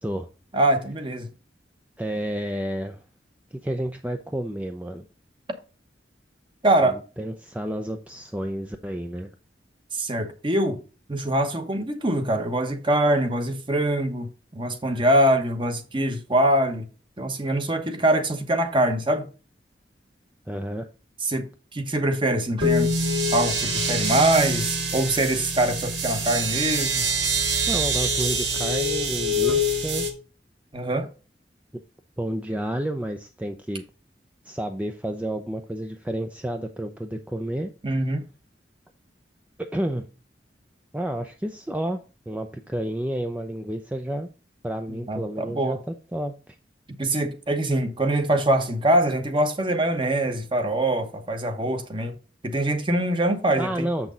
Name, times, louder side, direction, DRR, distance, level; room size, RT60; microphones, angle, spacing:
voice 1, 0.5-1.3 6.6-7.0 9.9-10.8 11.1-14.3 14.5-16.9 17.2-19.3 21.2-21.5 21.7-22.9 23.3-27.1 30.7-31.1 37.8-38.2 44.9-45.8 47.0-52.2 52.4-53.9, right 1 dB, 30° right, 1.1 m, -23 dB
voice 2, 2.0-3.0 3.6-5.1 6.8-9.3 20.5-20.8 27.7-30.1 32.2-33.8 34.4-37.7 39.6-40.1 40.9-42.0 42.3-44.3 44.6-46.6 53.6-54.1, right 1 dB, 10° right, 0.5 m, -30 dB
sound 1, 22.6-30.1, right 1 dB, 80° right, 1.8 m, -25 dB
7.3 x 6.1 x 3.8 m
head